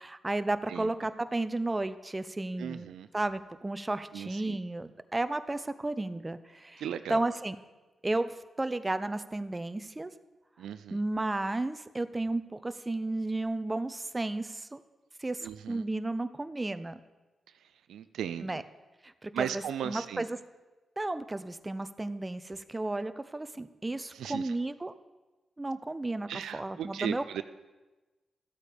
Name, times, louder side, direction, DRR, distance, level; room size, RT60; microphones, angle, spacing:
voice 1, 0.0-2.9 3.1-6.8 7.1-7.6 8.0-10.1 10.9-14.8 15.2-17.0 18.4-18.6 19.2-20.4 21.0-24.9 25.6-27.4, right 2 dB, 25° right, 12 dB, 0.8 m, -33 dB
voice 2, 2.6-3.1 4.1-4.6 6.8-7.2 10.6-11.0 15.4-15.8 17.9-18.6 19.3-20.2 24.1-24.5 26.3-27.4, right 9 dB, 85° right, 11 dB, 0.4 m, -36 dB
13.5 x 8.3 x 5.2 m, 1.2 s
supercardioid pair, 45°, 0 cm